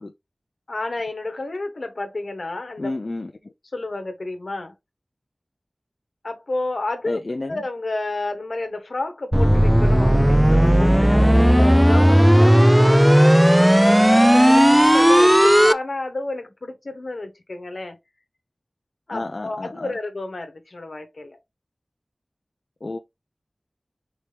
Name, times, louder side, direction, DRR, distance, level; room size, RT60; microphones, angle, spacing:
voice 1, 0.7-2.9 3.7-4.7 6.2-18.0 19.1-21.4, left 2 dB, 80° left, 1.1 m, -31 dB
voice 2, 2.8-3.3 7.1-7.6 19.1-19.9 22.8-23.0, left 2 dB, 60° left, 0.4 m, -31 dB
sound 1, 9.3-15.7, equal, 10° right, 0.3 m, -14 dB
4.5 x 3.3 x 2.7 m
wide cardioid pair, 45°, 0 cm